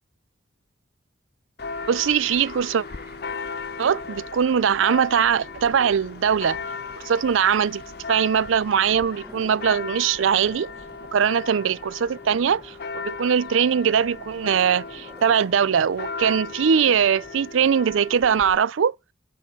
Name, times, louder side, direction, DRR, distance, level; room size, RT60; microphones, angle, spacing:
Church bell, 1.6-18.6, left 4 dB, 55° left, 0.7 m, -37 dB
sound 1, 1.7-17.5, equal, 5° right, 1.1 m, -50 dB
voice 1, 1.9-2.8 3.8-6.6 7.0-7.8 8.1-10.7 11.1-18.9, right 7 dB, 90° right, 0.4 m, -21 dB
9.8 x 3.8 x 7.3 m
head